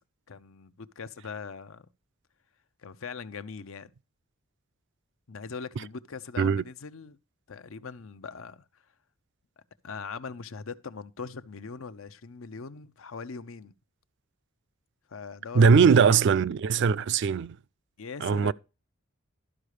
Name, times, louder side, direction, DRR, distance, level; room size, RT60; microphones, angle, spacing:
voice 1, 0.3-1.9 2.8-3.9 5.3-7.2 7.5-8.6 9.8-13.7 15.1-16.2 18.0-18.5, left 5 dB, 85° left, 0.7 m, -41 dB
voice 2, 15.5-17.5 18.2-18.5, right 5 dB, 60° right, 0.4 m, -20 dB
12.5 x 4.9 x 4.9 m
head